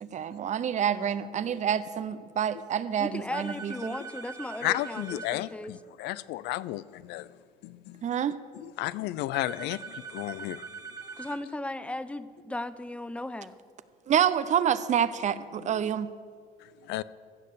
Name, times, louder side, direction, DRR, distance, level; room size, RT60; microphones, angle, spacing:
voice 1, 0.0-4.0 8.0-8.4 14.1-16.1, right 9 dB, 45° right, 0.6 m, -28 dB
voice 2, 3.0-5.7 11.2-13.5, left 1 dB, 5° left, 0.5 m, -36 dB
sound 1, 3.3-5.4 9.3-11.4, right 5 dB, 20° right, 1.3 m, -42 dB
voice 3, 4.6-7.4 7.6-8.0 8.5-10.8 15.6-15.8 16.6-17.0, left 16 dB, 85° left, 0.4 m, -34 dB
15.5 x 6.5 x 6.7 m
cardioid pair, 110°, 17 cm